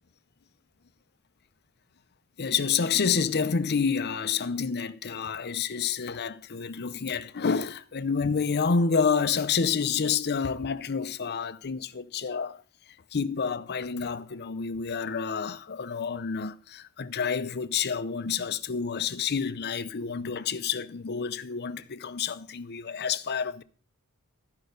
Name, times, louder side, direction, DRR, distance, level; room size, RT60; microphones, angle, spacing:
voice 1, 2.4-12.6 13.1-23.6, left 6 dB, 50° left, 0.6 m, -29 dB
13.5 x 5.6 x 6.5 m
head